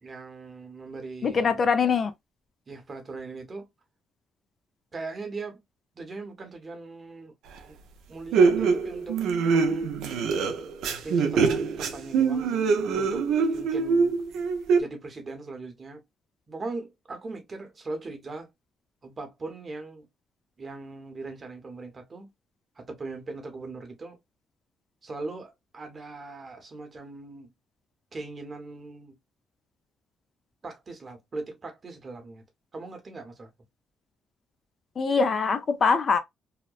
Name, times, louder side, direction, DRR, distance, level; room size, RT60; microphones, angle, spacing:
voice 1, 0.0-1.6 2.7-3.7 4.9-5.6 5.9-7.3 7.7-7.8 8.1-9.9 11.0-14.2 14.8-16.0 16.5-18.5 19.0-20.1 20.6-22.3 22.7-24.2 25.0-27.5 28.1-29.2 30.6-32.4 32.7-33.5, right 3 dB, 35° right, 0.8 m, -39 dB
voice 2, 1.2-2.1 35.0-36.2, left 5 dB, 45° left, 0.4 m, -23 dB
sound 1, 7.6-7.7 8.3-14.8, right 5 dB, 85° right, 0.4 m, -24 dB
2.8 x 2.1 x 2.3 m
cardioid pair, 90°, 0 cm